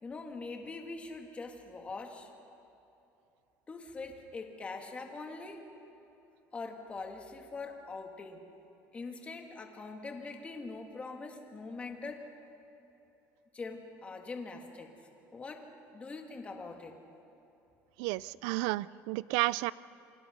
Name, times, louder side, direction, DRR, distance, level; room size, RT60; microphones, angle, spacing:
voice 1, 0.0-2.3 3.7-5.6 6.5-8.4 8.9-12.2 13.5-14.9 15.3-15.7 15.9-16.9, left 3 dB, 20° left, 3 dB, 2.3 m, -43 dB
voice 2, 18.0-19.7, right 20 dB, 90° right, 19 dB, 0.4 m, -32 dB
27.5 x 25.0 x 5.4 m, 2.9 s
cardioid pair, 150°, 6 cm